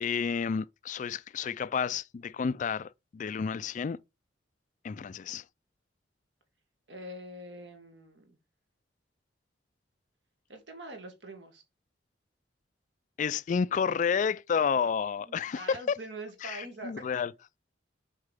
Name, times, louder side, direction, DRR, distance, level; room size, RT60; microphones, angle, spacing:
voice 1, 0.0-4.0 4.8-5.4 13.2-15.9 16.4-17.3, left 6 dB, 40° left, 0.3 m, -30 dB
voice 2, 6.9-8.4 10.5-11.6 15.3-17.2, right 1 dB, 70° right, 1.9 m, -44 dB
6.5 x 4.9 x 3.5 m
head